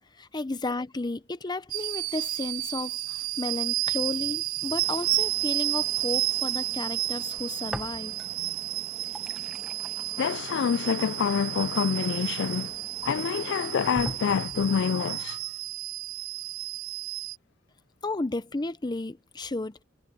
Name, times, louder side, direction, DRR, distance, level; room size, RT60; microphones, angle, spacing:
voice 1, 0.2-8.2 18.0-19.8, left 2 dB, 20° left, 0.6 m, -33 dB
sound 1, 1.7-17.4, right 17 dB, 90° right, 0.5 m, -31 dB
sound 2, 4.8-14.5, right 2 dB, 35° right, 1.6 m, -49 dB
sound 3, 7.7-8.5 8.8-12.7 13.3-13.4 13.9-14.8, equal, 5° right, 1.3 m, -42 dB
voice 2, 10.2-12.7 13.0-15.4, left 7 dB, 60° left, 0.3 m, -27 dB
head